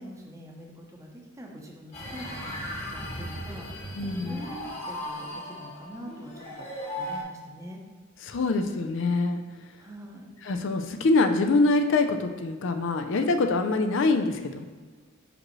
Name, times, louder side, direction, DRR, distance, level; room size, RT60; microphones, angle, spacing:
voice 1, 0.0-3.9 4.2-7.8 9.8-10.3, right 1 dB, 15° right, 0 dB, 0.8 m, -44 dB
sound 1, 1.9-7.2, equal, 35° left, 1.3 m, -37 dB
voice 2, 4.0-4.4 8.2-9.4 10.5-14.6, left 3 dB, 60° left, 6 dB, 0.4 m, -24 dB
6.0 x 5.0 x 3.1 m, 1.5 s
head